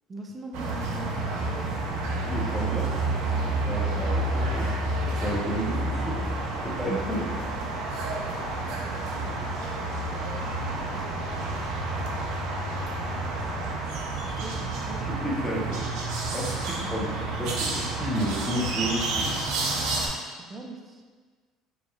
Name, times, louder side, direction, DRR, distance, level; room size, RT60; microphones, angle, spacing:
voice 1, 0.1-1.7 3.9-4.2 14.1-15.2 16.7-16.9 20.5-21.0, right 3 dB, 30° right, 3 dB, 0.5 m, -41 dB
sound 1, 0.5-20.1, right 2 dB, 80° right, 0.6 m, -29 dB
voice 2, 2.2-2.9 3.6-4.7 5.2-6.2 6.6-7.3 15.0-15.8 16.3-19.3, equal, ahead, -5 dB, 0.8 m, -31 dB
5.1 x 3.2 x 2.3 m, 1.5 s
cardioid pair, 120°, 0 cm